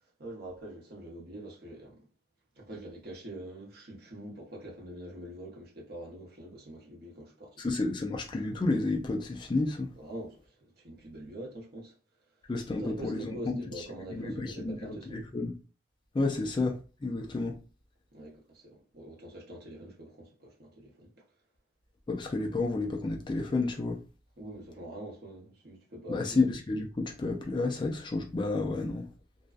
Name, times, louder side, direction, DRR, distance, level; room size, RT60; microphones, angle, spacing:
voice 1, 0.2-2.1 2.6-7.6 10.0-11.9 12.7-15.3 18.1-21.1 24.4-26.4, right 1 dB, 55° right, 0.8 m, -44 dB
voice 2, 7.6-9.9 12.5-13.6 14.1-15.5 16.1-17.6 22.1-24.0 26.1-29.1, left 3 dB, 25° left, 0.3 m, -31 dB
2.5 x 2.2 x 2.3 m
head